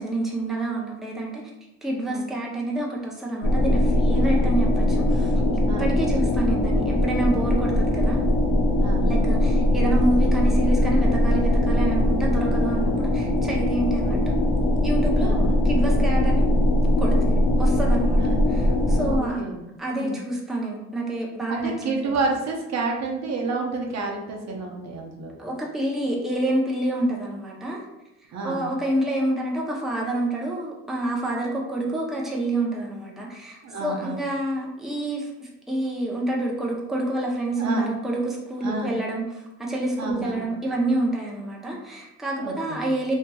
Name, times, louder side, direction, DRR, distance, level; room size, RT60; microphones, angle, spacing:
voice 1, 0.0-1.4 1.8-8.2 9.0-14.4 14.8-16.5 17.0-18.2 18.5-19.5 19.8-22.2 25.4-27.8 28.4-43.1, right 1 dB, ahead, -3 dB, 0.5 m, -28 dB
sound 1, 3.4-19.2, left 1 dB, 70° left, 0.5 m, -21 dB
voice 2, 5.7-6.1 8.8-9.2 15.2-15.7 18.2-18.4 19.0-19.6 19.9-20.2 21.5-25.3 28.3-28.6 33.6-34.2 37.6-37.9 38.6-38.9 40.0-40.4 42.4-42.8, right 3 dB, 60° right, 0 dB, 0.7 m, -30 dB
2.8 x 2.7 x 2.2 m, 0.92 s
cardioid pair, 90°, 30 cm